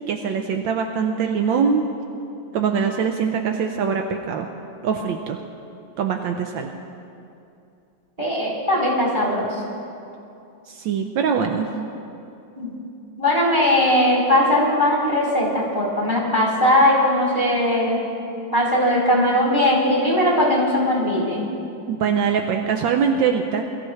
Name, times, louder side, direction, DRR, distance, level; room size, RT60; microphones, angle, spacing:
voice 1, 0.1-1.9 2.5-4.5 4.8-5.4 6.0-6.7 10.7-11.7 21.9-23.6, right 6 dB, 80° right, 4 dB, 1.4 m, -22 dB
voice 2, 8.2-9.5 12.6-12.7 13.2-18.0 18.5-21.4, left 1 dB, 20° right, -7 dB, 3.8 m, -19 dB
22.0 x 13.5 x 3.2 m, 2.7 s
omnidirectional pair, 2.1 m